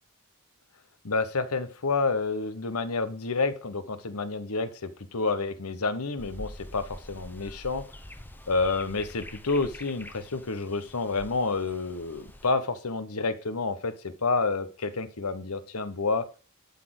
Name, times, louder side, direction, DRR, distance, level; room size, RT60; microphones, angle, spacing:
voice 1, 1.0-7.9 8.5-16.2, left 3 dB, 75° left, 11 dB, 1.1 m, -29 dB
sound 1, 6.2-12.5, left 1 dB, 10° left, 0.7 m, -45 dB
11.5 x 4.3 x 7.7 m, 0.40 s
head